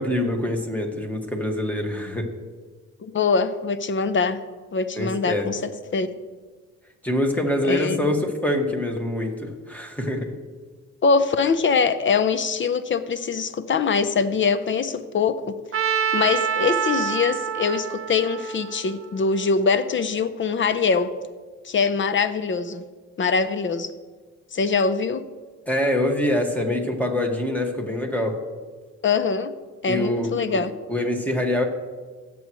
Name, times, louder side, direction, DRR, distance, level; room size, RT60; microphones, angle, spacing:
voice 1, 0.0-2.3 5.0-5.5 7.0-10.3 25.7-28.4 29.9-30.3 30.9-31.6, left 1 dB, 5° left, 2 dB, 1.9 m, -24 dB
voice 2, 3.0-4.4 4.7-6.1 7.7-8.1 11.0-15.4 16.1-21.1 21.6-22.9 23.2-23.9 24.5-25.3 29.0-29.5 29.8-30.7, left 5 dB, 40° left, 12 dB, 0.8 m, -23 dB
Trumpet, 15.7-19.8, right 8 dB, 45° right, 0.8 m, -27 dB
17.0 x 7.8 x 3.2 m, 1.5 s
cardioid pair, 90°, 30 cm